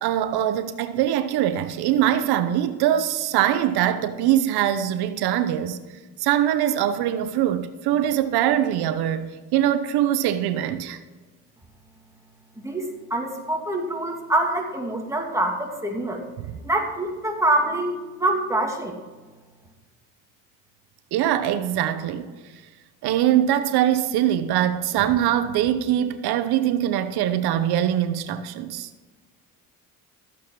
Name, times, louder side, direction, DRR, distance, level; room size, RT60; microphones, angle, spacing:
voice 1, 0.0-5.8 6.2-11.0 16.4-16.6 21.1-22.3 23.0-28.9, right 11 dB, 75° right, 0.9 m, -22 dB
voice 2, 12.6-16.2 16.6-19.0, right 1 dB, 10° right, 2.6 m, -25 dB
14.0 x 8.3 x 4.7 m
cardioid pair, 95°, 38 cm